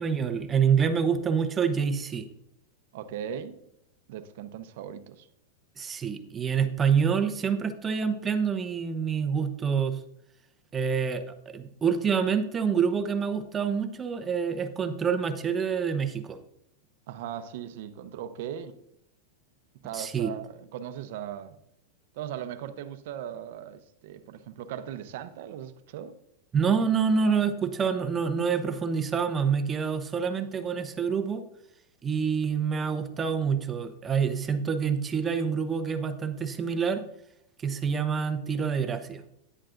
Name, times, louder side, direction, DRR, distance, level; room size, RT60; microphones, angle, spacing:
voice 1, 0.0-2.3 5.8-10.0 10.7-16.4 19.9-20.3 26.5-31.4 32.0-37.0 37.6-39.2, right 6 dB, 15° right, 0.8 m, -27 dB
voice 2, 2.9-3.6 4.1-5.3 17.1-18.8 19.8-21.6 22.1-26.2, right 9 dB, 60° right, 0.7 m, -38 dB
10.5 x 9.8 x 2.6 m
supercardioid pair, 145°, 0 cm